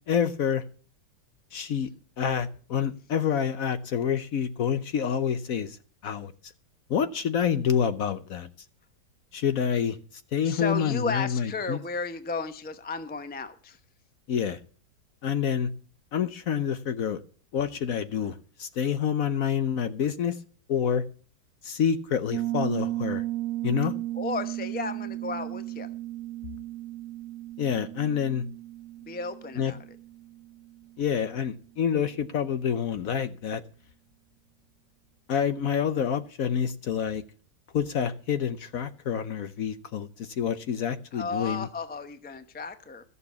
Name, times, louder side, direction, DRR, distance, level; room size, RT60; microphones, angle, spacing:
voice 1, 0.1-0.6 1.5-1.9 2.2-5.8 6.0-6.5 6.9-8.5 9.3-10.0 10.3-11.8 14.3-14.6 15.2-15.7 16.1-17.2 17.5-20.4 20.7-21.0 21.6-23.2 23.6-23.9 27.6-28.4 29.6-29.7 31.0-33.6 35.3-37.2 37.7-41.7, left 8 dB, 60° left, 12 dB, 1.0 m, -27 dB
voice 2, 10.4-13.8 24.1-25.9 29.0-29.8 41.1-43.0, left 3 dB, 10° left, 9 dB, 0.5 m, -34 dB
Piano, 22.3-30.8, right 15 dB, 65° right, 1.2 m, -35 dB
14.0 x 6.9 x 6.9 m, 0.40 s
omnidirectional pair, 1.9 m